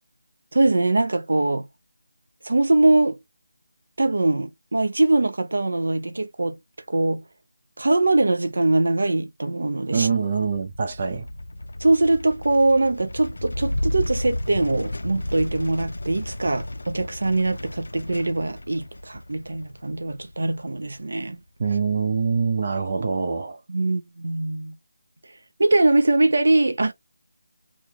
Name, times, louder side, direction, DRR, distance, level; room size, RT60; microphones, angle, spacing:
voice 1, 0.5-1.7 2.4-3.2 4.0-6.6 6.9-7.2 7.8-10.1 11.8-21.4 23.7-24.7 25.6-26.9, right 2 dB, 60° right, 0.8 m, -22 dB
voice 2, 9.9-11.3 21.6-23.6, right 5 dB, 30° right, 0.6 m, -24 dB
sound 1, 10.4-21.0, left 1 dB, 75° left, 0.5 m, -33 dB
3.0 x 2.3 x 3.6 m
figure-of-eight pair, 180°, 0 cm